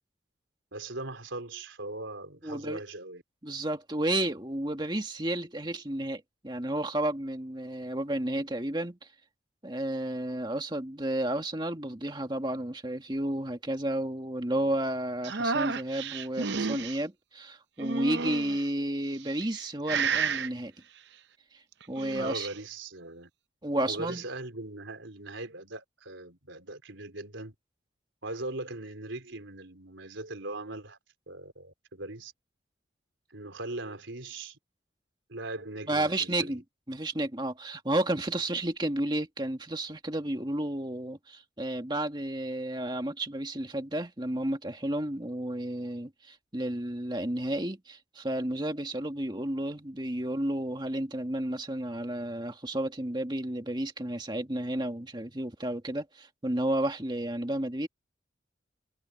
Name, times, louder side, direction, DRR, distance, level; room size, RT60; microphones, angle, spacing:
voice 1, 0.7-3.2 22.1-23.3 23.9-27.5 28.2-31.0 31.3-32.3 33.3-34.6 35.3-36.6, right 2 dB, 80° right, 4.2 m, -40 dB
voice 2, 2.4-2.8 3.4-9.0 9.6-20.7 21.9-22.5 23.6-24.2 35.9-36.6 36.9-57.9, right 1 dB, 25° right, 2.0 m, -32 dB
sound 1, 15.2-17.0 17.8-18.6 19.3-19.6 19.9-20.5 21.8-22.6, right 5 dB, 65° right, 0.7 m, -31 dB
head